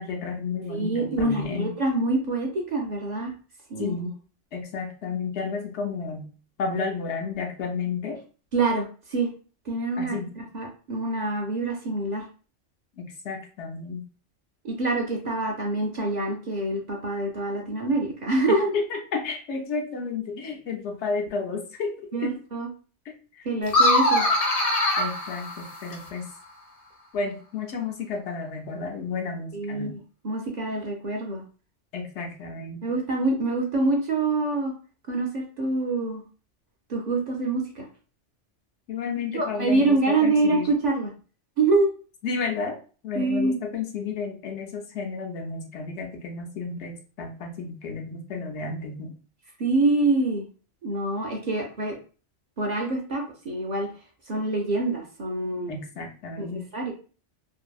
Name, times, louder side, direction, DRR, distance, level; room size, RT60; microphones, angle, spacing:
voice 1, 0.0-1.7 3.8-4.1 4.5-6.3 6.6-8.2 10.0-10.3 13.0-14.0 18.5-22.0 22.2-22.4 23.4-23.5 25.0-26.2 27.1-30.0 31.9-32.8 38.9-40.7 42.2-42.8 43.0-49.1 55.7-56.7, left 4 dB, 75° left, 3 dB, 0.9 m, -32 dB
voice 2, 0.7-3.3 3.7-4.0 8.5-9.3 9.7-12.2 14.6-18.7 22.1-22.7 23.4-24.2 29.5-31.4 32.8-34.7 35.1-36.2 36.9-37.9 39.3-41.1 41.6-41.9 43.1-43.6 49.6-50.4 50.8-51.9 52.6-53.9 54.3-55.8 56.4-56.9, right 2 dB, 50° right, 1 dB, 0.5 m, -26 dB
sound 1, 23.7-26.2, left 1 dB, 40° left, 0.6 m, -22 dB
2.7 x 2.5 x 2.3 m, 0.38 s
omnidirectional pair, 1.2 m